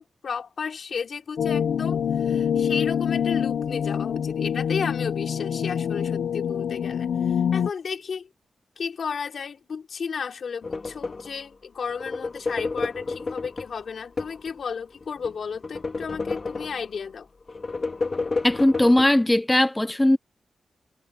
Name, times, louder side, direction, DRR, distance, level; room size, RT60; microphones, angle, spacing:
voice 1, 0.0-8.3 8.8-17.3, left 6 dB, 65° left, 3.7 m, -33 dB
sound 1, 1.4-7.7, left 8 dB, 90° left, 1.1 m, -25 dB
sound 2, 10.6-11.4 11.9-14.5 15.0-17.0 17.5-19.1, left 3 dB, 40° left, 2.3 m, -30 dB
voice 2, 18.4-20.2, left 1 dB, 10° left, 0.7 m, -19 dB
cardioid pair, 75°, 0 cm